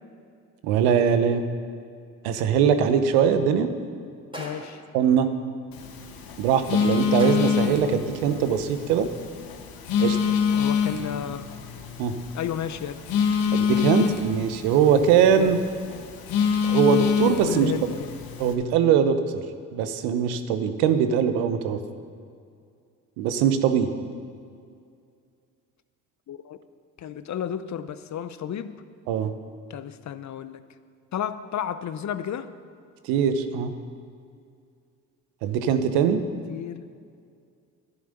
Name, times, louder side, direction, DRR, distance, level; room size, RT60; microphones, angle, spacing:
voice 1, 0.6-1.5 2.2-3.7 4.9-5.3 6.4-9.1 10.0-10.2 12.0-12.2 13.5-15.6 16.6-17.7 18.4-19.2 19.7-21.8 23.2-23.9 29.1-29.3 33.0-33.7 35.4-36.2, right 7 dB, 80° right, 9 dB, 1.0 m, -21 dB
sound 1, 4.3-4.9 7.2-7.8, equal, 10° right, 3.7 m, -38 dB
voice 2, 4.4-4.8 10.5-11.5 12.3-13.0 15.3-15.5 17.4-18.1 26.3-26.6 27.0-28.7 29.7-30.6 31.1-32.5 36.5-36.9, left 9 dB, 45° left, 12 dB, 0.8 m, -32 dB
Telephone, 5.7-18.5, left 7 dB, 65° left, 1.5 m, -26 dB
11.0 x 10.5 x 6.7 m, 2.3 s
hypercardioid pair, 60°, 38 cm